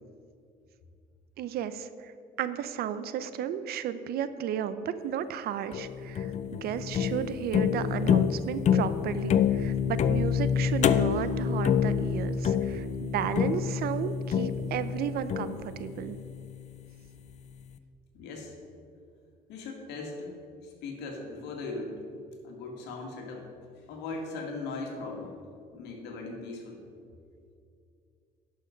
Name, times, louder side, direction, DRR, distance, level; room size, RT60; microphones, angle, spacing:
voice 1, 1.4-2.1 2.4-16.2, right 9 dB, 65° right, 12 dB, 0.6 m, -33 dB
sound 1, 5.7-16.9, left 7 dB, 45° left, 0.5 m, -27 dB
voice 2, 18.1-18.6 19.5-22.0 22.4-23.5 23.9-25.4 25.7-26.8, left 3 dB, 85° left, 1 dB, 2.0 m, -39 dB
11.0 x 6.5 x 5.2 m, 2.4 s
cardioid pair, 110°, 17 cm